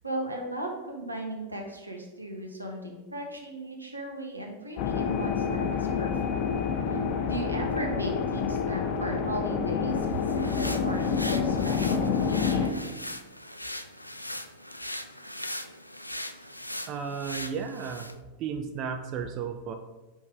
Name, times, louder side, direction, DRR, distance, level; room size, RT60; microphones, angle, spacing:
voice 1, 0.0-6.2 6.9-7.0 7.2-10.1 10.4-12.9, right 1 dB, 85° right, 1 dB, 1.2 m, -36 dB
sound 1, 4.8-12.7, left 6 dB, 40° left, 0.6 m, -28 dB
sound 2, 9.9-18.2, left 1 dB, 85° left, 0.4 m, -39 dB
voice 2, 16.9-18.1 18.4-19.7, right 6 dB, 35° right, 6 dB, 0.5 m, -34 dB
5.3 x 4.6 x 5.2 m, 1.1 s
figure-of-eight pair, 90°, 0 cm